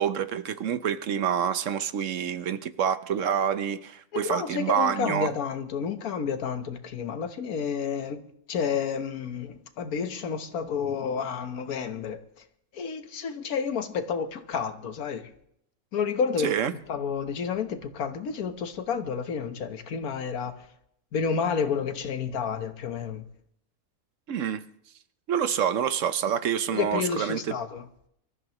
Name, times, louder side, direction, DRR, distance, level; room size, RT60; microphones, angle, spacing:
voice 1, 0.0-5.3 16.4-16.7 24.3-24.6 25.3-27.5, right 8 dB, 65° right, 1.0 m, -27 dB
voice 2, 4.1-8.2 8.5-12.2 12.7-15.3 15.9-16.5 16.9-20.7 21.1-23.2 26.7-27.8, left 6 dB, 85° left, 1.5 m, -30 dB
24.5 x 14.0 x 3.0 m
omnidirectional pair, 1.5 m